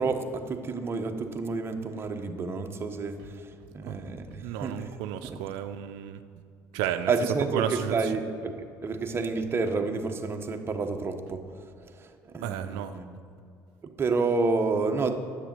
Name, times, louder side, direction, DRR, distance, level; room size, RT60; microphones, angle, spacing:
voice 1, 0.0-4.9 5.2-5.4 7.1-11.4 11.9-13.2 13.8-15.2, right 4 dB, 35° right, 5 dB, 1.2 m, -30 dB
voice 2, 4.4-6.2 6.7-7.1 7.5-8.0 12.4-13.0, right 11 dB, 85° right, 8 dB, 0.5 m, -32 dB
10.0 x 8.0 x 7.5 m, 2.4 s
supercardioid pair, 85°, 7 cm